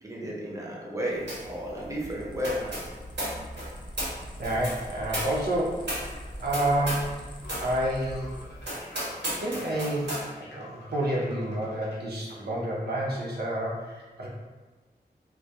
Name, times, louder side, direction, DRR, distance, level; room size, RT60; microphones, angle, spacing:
voice 1, 0.0-2.8, equal, 15° right, -4 dB, 0.6 m, -33 dB
sound 1, 1.2-8.7, equal, 25° left, 0.4 m, -43 dB
sound 2, 1.3-1.6 1.8-7.2 7.4-7.7 8.1-8.2 8.6-10.3, right 1 dB, 85° right, 1.0 m, -35 dB
voice 2, 4.4-7.1 7.6-8.3 9.4-14.3, right 1 dB, 65° right, -5 dB, 0.5 m, -29 dB
sound 3, 7.4-12.0, left 1 dB, 80° left, 0.6 m, -49 dB
2.2 x 2.0 x 2.7 m, 1.3 s
wide cardioid pair, 50°, 18 cm